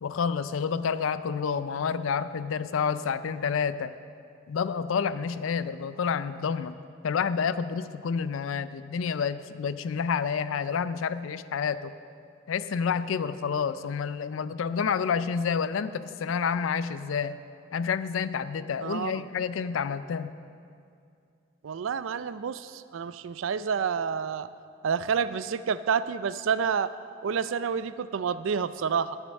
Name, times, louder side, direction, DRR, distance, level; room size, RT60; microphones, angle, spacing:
voice 1, 0.0-3.9 4.5-6.8 7.0-11.9 12.5-17.4 17.7-20.3, left 6 dB, 75° left, 14 dB, 0.4 m, -29 dB
voice 2, 18.8-19.2 21.6-24.5 24.8-26.9 27.2-29.2, right 6 dB, 70° right, 14 dB, 0.4 m, -29 dB
11.0 x 7.3 x 6.4 m, 2.4 s
head